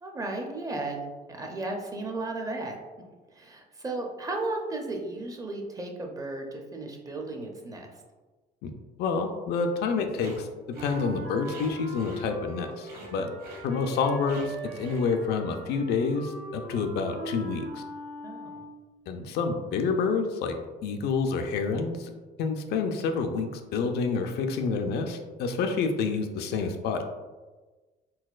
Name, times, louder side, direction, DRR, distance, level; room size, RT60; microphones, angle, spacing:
voice 1, 0.0-2.8 3.3-7.9 13.0-13.3 18.2-18.5, right 2 dB, 20° right, 1 dB, 0.5 m, -35 dB
voice 2, 9.0-10.5 10.8-13.3 13.6-17.8 19.1-20.5 20.8-22.1 22.4-27.1, left 4 dB, 75° left, 5 dB, 0.4 m, -28 dB
sound 1, 10.1-10.4 10.7-11.0 11.4-12.6 12.9-13.1 13.4-13.7 14.3-14.5 14.8-15.1, right 1 dB, 65° right, 1.0 m, -46 dB
Wind instrument woodwind instrument, 10.7-18.9, right 1 dB, 85° right, 1.3 m, -41 dB
3.9 x 2.2 x 2.4 m, 1.3 s
cardioid pair, 110°, 17 cm